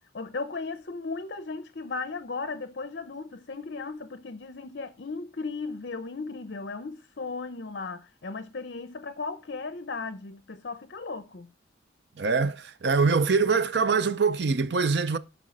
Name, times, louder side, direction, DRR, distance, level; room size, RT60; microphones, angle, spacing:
voice 1, 0.1-11.5, left 4 dB, 60° left, 0.7 m, -36 dB
voice 2, 12.2-15.2, right 4 dB, 65° right, 0.5 m, -24 dB
11.0 x 4.9 x 5.1 m
head